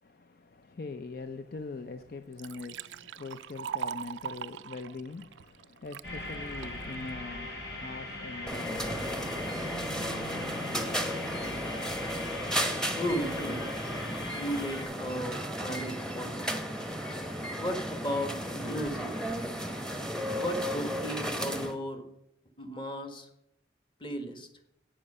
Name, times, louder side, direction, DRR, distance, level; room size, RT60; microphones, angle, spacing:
voice 1, 0.0-11.2, left 3 dB, 55° left, 0.5 m, -43 dB
Liquid, 1.6-1.7 2.1-6.1 6.6-7.1, right 8 dB, 85° right, 0.4 m, -40 dB
sound 1, 6.0-14.8, left 1 dB, 80° left, 5.0 m, -40 dB
sound 2, 8.5-21.7, equal, 5° left, 0.9 m, -34 dB
voice 2, 12.9-13.7 14.1-16.4 17.6-19.3 20.3-22.1 22.6-23.3 24.0-24.5, equal, 25° left, 1.3 m, -35 dB
10.0 x 8.7 x 5.5 m
head